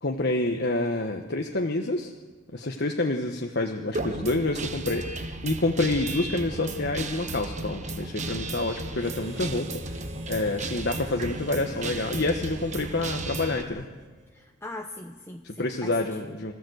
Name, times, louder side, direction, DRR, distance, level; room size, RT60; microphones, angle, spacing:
voice 1, 0.0-2.1 2.5-9.8 10.3-13.8 15.4-16.5, left 2 dB, 55° left, 2 dB, 1.3 m, -28 dB
Guitar, 3.9-13.6, right 2 dB, 35° right, 1.3 m, -34 dB
Harmonica, 9.0-14.5, equal, 65° right, 3.5 m, -48 dB
voice 2, 14.3-16.4, left 1 dB, 15° left, 3 dB, 0.9 m, -41 dB
26.0 x 14.5 x 8.0 m, 1.3 s
head